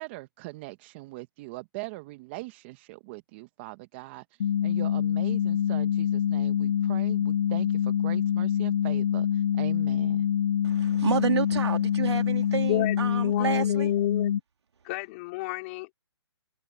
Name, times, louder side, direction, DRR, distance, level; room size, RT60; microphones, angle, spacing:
voice 1, 0.0-10.3, right 22 dB, 25° right, 1.2 m, -41 dB
sound 1, 4.4-14.4, left 9 dB, 45° left, 0.5 m, -25 dB
voice 2, 10.6-13.9, right 7 dB, 75° right, 3.2 m, -29 dB
voice 3, 12.7-14.4 14.8-15.9, left 24 dB, 30° left, 4.8 m, -32 dB
hypercardioid pair, 160°, 14 cm